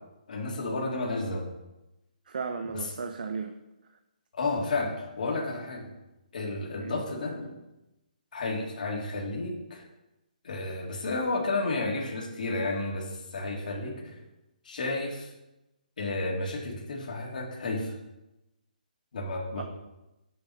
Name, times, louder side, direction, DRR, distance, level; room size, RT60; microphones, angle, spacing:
voice 1, 0.3-1.4 2.7-2.9 4.3-5.9 6.3-7.5 8.3-9.8 10.4-14.2 14.6-15.3 16.0-17.9 19.1-19.6, left 2 dB, 65° left, -1 dB, 2.2 m, -32 dB
voice 2, 2.3-3.5 6.8-7.0 19.6-19.7, right 5 dB, 70° right, 7 dB, 0.7 m, -35 dB
6.9 x 6.6 x 5.5 m, 0.97 s
hypercardioid pair, 155°, 5 cm